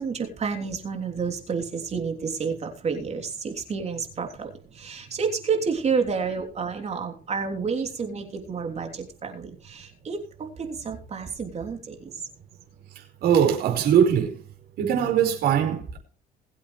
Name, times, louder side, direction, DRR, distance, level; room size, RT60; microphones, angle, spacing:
voice 1, 0.0-12.2, right 5 dB, 40° right, 3.3 m, -30 dB
voice 2, 13.2-14.4 14.8-16.0, right 8 dB, 70° right, 5.1 m, -21 dB
22.0 x 8.2 x 3.3 m
cardioid pair, 110°, 17 cm